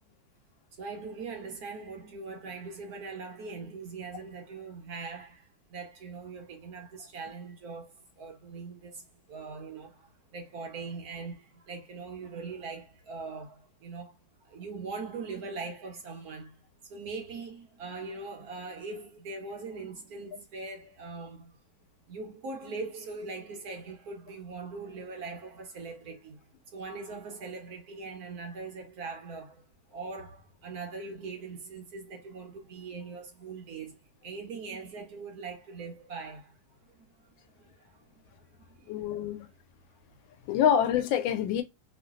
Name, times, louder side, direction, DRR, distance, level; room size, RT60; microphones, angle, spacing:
voice 1, 0.8-14.2 14.4-21.6 22.1-29.6 29.9-36.6 36.9-39.3 39.9-40.0, right 4 dB, 60° right, 1.2 m, -41 dB
voice 2, 38.9-39.5 40.5-41.6, left 9 dB, 85° left, 1.3 m, -26 dB
3.1 x 2.5 x 2.4 m
omnidirectional pair, 2.0 m